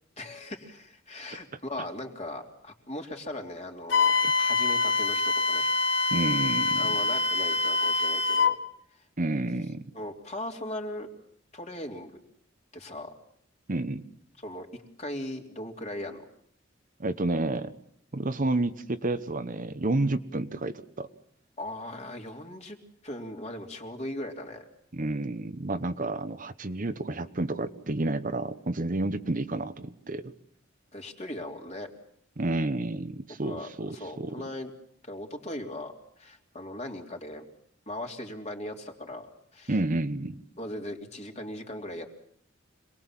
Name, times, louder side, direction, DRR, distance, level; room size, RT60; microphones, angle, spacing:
voice 1, 0.2-5.7 6.8-8.6 8.9-9.0 9.9-11.1 11.5-12.1 12.7-13.1 14.4-14.7 15.0-16.2 21.6-22.8 23.0-24.6 30.9-31.9 33.4-34.7 35.0-37.4 37.9-39.7 40.6-42.1, left 1 dB, 35° left, 3 dB, 3.3 m, -38 dB
Wind instrument woodwind instrument, 3.9-8.6, left 3 dB, 65° left, 1.8 m, -25 dB
voice 2, 6.1-6.9 9.2-9.8 13.7-14.1 17.0-17.7 18.1-21.1 24.9-30.3 32.4-34.4 39.7-40.4, right 2 dB, 45° right, 10 dB, 1.0 m, -30 dB
26.5 x 20.0 x 7.4 m, 0.66 s
head